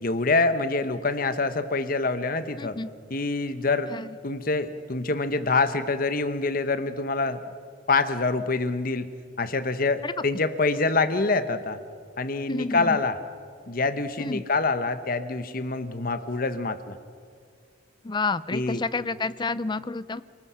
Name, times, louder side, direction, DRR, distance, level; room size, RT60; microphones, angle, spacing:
voice 1, 0.0-2.8 3.1-3.9 4.2-7.4 7.9-9.1 9.4-11.8 12.2-13.1 13.7-16.9 18.5-18.8, left 3 dB, 50° left, 11 dB, 1.0 m, -26 dB
voice 2, 2.6-2.9 3.9-4.1 10.0-10.1 12.5-13.0 14.2-14.4 18.0-20.2, left 3 dB, 25° left, 16 dB, 0.5 m, -29 dB
28.0 x 19.5 x 5.7 m, 2.2 s
head